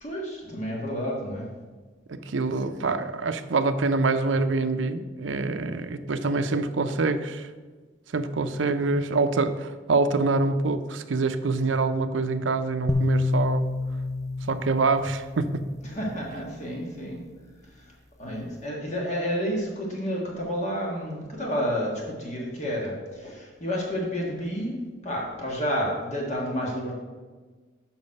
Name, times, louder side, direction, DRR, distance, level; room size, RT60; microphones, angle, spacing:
voice 1, 0.0-1.5 15.8-17.2 17.7-17.9 18.2-26.9, equal, 40° left, -2 dB, 1.4 m, -30 dB
voice 2, 2.1-7.5 8.1-13.6 14.5-15.6, right 3 dB, 85° right, 10 dB, 0.6 m, -25 dB
sound 1, 12.9-16.2, left 2 dB, 15° left, 0.4 m, -28 dB
7.1 x 6.0 x 5.3 m, 1.4 s
head